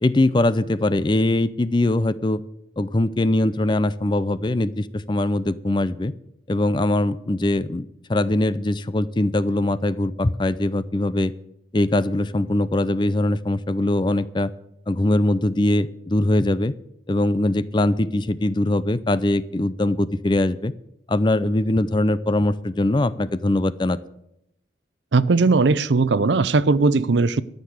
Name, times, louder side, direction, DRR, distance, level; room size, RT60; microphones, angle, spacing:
voice 1, 0.0-2.4 2.8-6.1 6.5-11.3 11.7-14.5 14.9-16.7 17.1-20.7 21.1-24.0, left 1 dB, 25° left, 0.4 m, -21 dB
voice 2, 25.1-27.4, right 3 dB, 70° right, 0.5 m, -18 dB
13.0 x 6.6 x 9.2 m
head